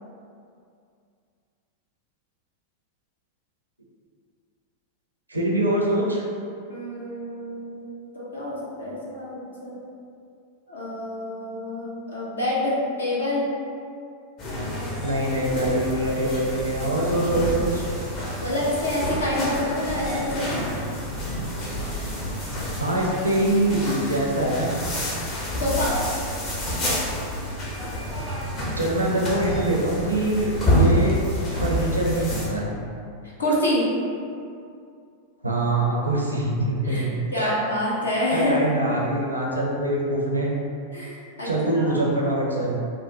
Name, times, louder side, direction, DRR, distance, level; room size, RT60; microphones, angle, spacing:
voice 1, 5.3-6.2 15.0-17.9 22.8-24.8 28.8-31.2 31.5-32.7 35.4-37.6 38.3-40.5 41.4-42.8, right 1 dB, 85° right, -3 dB, 0.5 m, -24 dB
voice 2, 6.7-7.9 8.1-9.8 10.7-13.4 18.4-20.6 25.6-25.9 33.4-33.8 36.8-37.0 37.3-38.7 40.9-42.0, left 1 dB, 75° left, -6 dB, 0.6 m, -27 dB
sound 1, 14.4-32.5, equal, 35° left, 0.7 m, -28 dB
3.6 x 2.1 x 2.7 m, 2.4 s
figure-of-eight pair, 90°, 0 cm